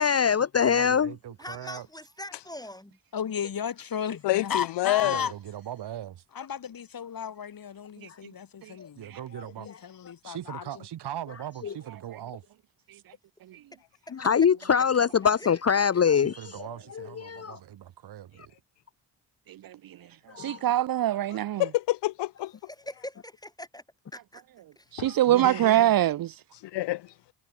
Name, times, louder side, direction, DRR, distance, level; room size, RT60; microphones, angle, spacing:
voice 1, 0.0-1.1 11.6-11.7 14.1-16.7 16.9-17.6 20.3-20.6 25.0-25.2, left 7 dB, 35° left, 1.0 m, -23 dB
voice 2, 0.6-1.9 5.0-6.2 9.0-9.7 10.2-12.4 16.2-18.5 25.3-25.9, right 11 dB, 75° right, 6.5 m, -39 dB
voice 3, 1.4-3.0 14.1-14.2 15.4-15.6 22.7-23.8 24.1-24.4 24.8-24.9, left 1 dB, 10° left, 7.7 m, -42 dB
voice 4, 3.1-5.3 6.3-9.1 9.6-10.8, left 8 dB, 55° left, 2.6 m, -34 dB
voice 5, 4.2-5.3 21.6-22.5 25.0-25.1 25.4-25.6 26.6-27.1, left 17 dB, 85° left, 3.5 m, -27 dB
voice 6, 19.5-20.0 20.4-21.6 24.9-26.4, right 12 dB, 55° right, 0.7 m, -24 dB
hypercardioid pair, 45°, 41 cm